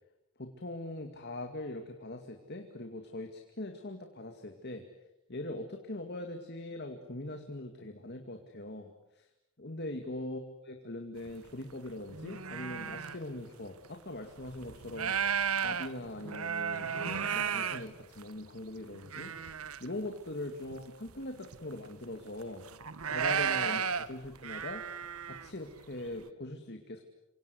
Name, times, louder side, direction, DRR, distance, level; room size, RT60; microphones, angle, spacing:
voice 1, 0.4-4.8 5.3-9.3 9.6-15.2 15.6-22.7 23.1-24.8 25.2-27.0, left 1 dB, 50° left, 5 dB, 2.3 m, -42 dB
sound 1, 11.3-11.4 11.8-13.2 13.8-13.9 14.4-18.5 18.9-19.9 20.1-20.2 20.7-20.8 21.1-21.7 22.4-25.5, right 7 dB, 80° right, 1.2 m, -34 dB
29.0 x 25.5 x 8.0 m, 0.89 s
head